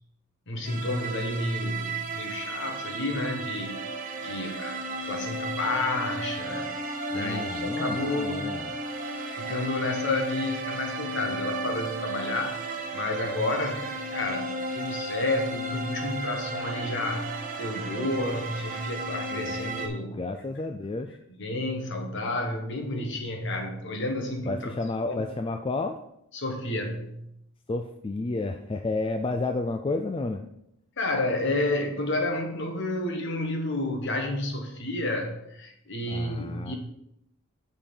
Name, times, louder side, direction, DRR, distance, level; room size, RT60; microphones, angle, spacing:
voice 1, 0.5-3.8 4.2-6.7 7.1-8.6 9.4-12.6 12.9-20.2 21.4-24.7 25.0-25.2 26.3-27.2 31.0-36.7, left 2 dB, 55° left, 3 dB, 1.3 m, -30 dB
sound 1, 0.6-19.9, right 2 dB, 35° right, 1.0 m, -34 dB
voice 2, 7.1-8.7 19.3-21.2 24.5-26.0 27.7-30.5 36.0-36.7, left 3 dB, 25° left, 6 dB, 0.3 m, -31 dB
6.6 x 5.7 x 5.3 m, 0.79 s
head